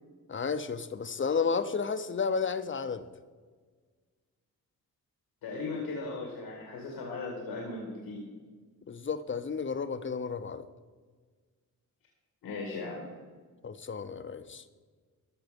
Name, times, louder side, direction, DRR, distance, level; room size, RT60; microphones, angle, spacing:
voice 1, 0.3-3.0 8.9-10.6 13.6-14.6, left 5 dB, 35° left, 11 dB, 0.8 m, -32 dB
voice 2, 5.4-8.3 12.4-13.1, left 3 dB, 90° left, -1 dB, 2.0 m, -37 dB
14.0 x 5.9 x 5.2 m, 1.5 s
cardioid pair, 65°, 36 cm